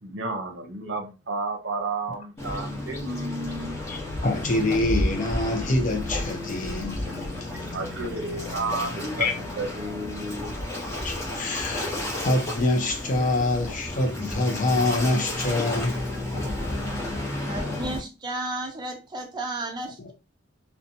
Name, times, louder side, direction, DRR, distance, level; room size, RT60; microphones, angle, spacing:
voice 1, 0.0-3.8 7.7-9.3 9.6-10.5, right 2 dB, 60° right, 0.7 m, -32 dB
Waves surf, 2.4-18.0, left 1 dB, 15° left, 0.9 m, -32 dB
voice 2, 3.9-7.1 9.2-9.3 11.0-12.0 12.2-16.0 20.0-20.1, left 2 dB, 40° left, 0.4 m, -25 dB
voice 3, 17.4-20.1, right 2 dB, 20° right, 0.4 m, -33 dB
2.7 x 2.1 x 2.6 m
head